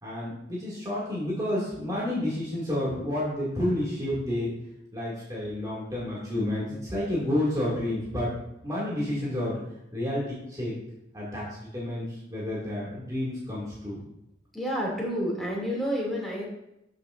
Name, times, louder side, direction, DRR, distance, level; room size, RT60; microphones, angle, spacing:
voice 1, 0.0-4.5 4.9-8.3 8.6-9.6 9.9-10.7 11.1-14.0, left 1 dB, 20° right, -7 dB, 2.4 m, -30 dB
voice 2, 14.5-16.5, equal, ahead, -4 dB, 2.7 m, -29 dB
12.0 x 6.6 x 2.6 m, 0.84 s
head